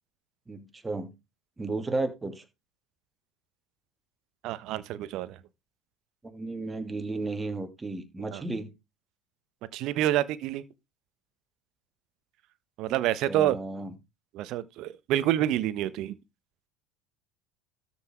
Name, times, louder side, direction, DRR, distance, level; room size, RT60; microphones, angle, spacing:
voice 1, 0.5-1.1 1.6-2.4 6.2-8.7 13.3-13.9, right 2 dB, 15° right, 2.8 m, -33 dB
voice 2, 4.4-5.4 8.3-8.4 9.7-10.6 12.8-13.6 14.3-16.1, right 13 dB, 60° right, 1.2 m, -27 dB
13.0 x 6.0 x 4.6 m
hypercardioid pair, 75°, 0 cm